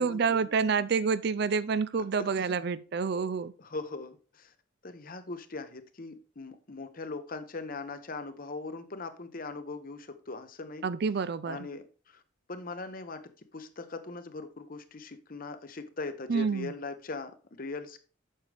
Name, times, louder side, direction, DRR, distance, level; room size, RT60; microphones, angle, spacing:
voice 1, 0.0-3.5 10.8-11.6 16.3-16.7, right 5 dB, 60° right, 0.4 m, -28 dB
voice 2, 2.2-2.6 3.6-4.5 4.8-10.8 11.4-12.2 12.5-13.2 13.5-18.0, left 3 dB, 50° left, 1.0 m, -40 dB
8.7 x 6.5 x 3.4 m
head